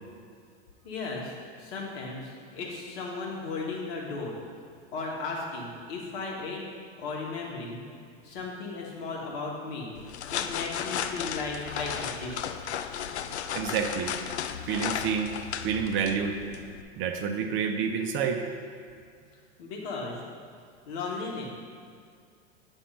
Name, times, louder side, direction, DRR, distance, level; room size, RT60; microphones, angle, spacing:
voice 1, 0.8-4.4 4.9-6.7 7.0-7.8 8.2-9.9 10.3-12.4 19.6-20.2 20.9-21.5, left 3 dB, 65° left, -2 dB, 1.9 m, -35 dB
sound 1, 9.9-16.8, left 8 dB, 85° left, 0.5 m, -35 dB
voice 2, 13.5-14.1 14.7-15.3 15.6-16.4 17.0-18.4, right 6 dB, 35° right, 5 dB, 0.6 m, -28 dB
9.8 x 3.5 x 5.5 m, 2.2 s
hypercardioid pair, 105°, 33 cm